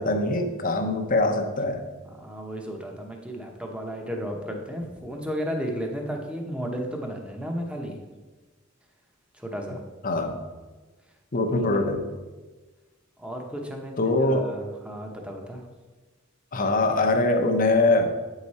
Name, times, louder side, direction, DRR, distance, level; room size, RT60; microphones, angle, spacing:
voice 1, 0.0-1.8 10.0-10.4 11.3-12.1 14.0-14.5 16.5-18.1, left 2 dB, 45° left, 5 dB, 0.7 m, -23 dB
voice 2, 2.1-8.0 9.3-9.8 11.5-11.6 13.2-15.6, equal, 5° right, 1 dB, 0.8 m, -33 dB
8.1 x 4.8 x 4.1 m, 1.3 s
head